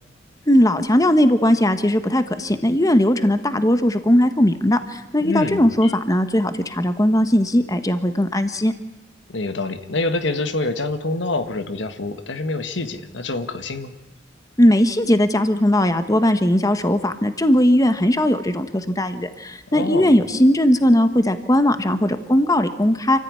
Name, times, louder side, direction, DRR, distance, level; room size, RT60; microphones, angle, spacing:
voice 1, 0.5-8.7 14.6-23.2, left 1 dB, 20° left, 9 dB, 1.2 m, -18 dB
voice 2, 5.2-5.9 9.3-13.9 19.7-20.1, left 2 dB, 80° left, 9 dB, 1.6 m, -26 dB
27.0 x 15.0 x 9.6 m, 1.1 s
head